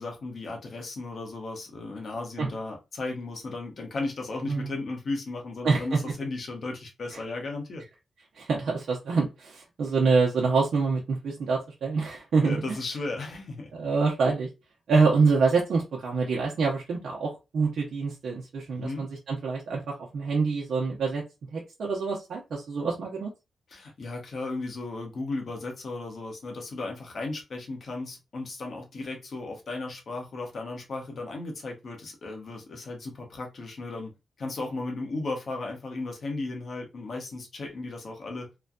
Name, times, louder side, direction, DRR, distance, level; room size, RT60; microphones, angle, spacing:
voice 1, 0.0-7.8 12.4-13.7 18.7-19.1 23.7-34.1 34.4-38.5, left 3 dB, 60° left, 1.0 m, -35 dB
voice 2, 5.6-6.0 8.4-12.6 13.7-14.5 14.9-21.2 21.5-23.3, right 4 dB, 75° right, 0.7 m, -26 dB
3.1 x 2.2 x 2.5 m
cardioid pair, 90°, 0 cm